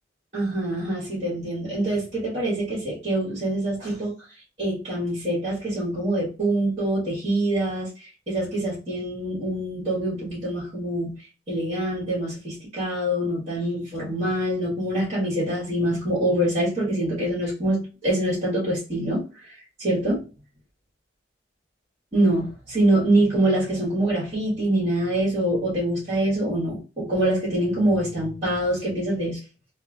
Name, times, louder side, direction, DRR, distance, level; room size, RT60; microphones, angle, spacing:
voice 1, 0.3-4.1 4.6-7.9 8.3-11.1 11.5-19.2 19.8-20.2 22.1-29.4, right 1 dB, 35° right, 1.7 m, -25 dB
3.4 x 2.6 x 2.5 m
head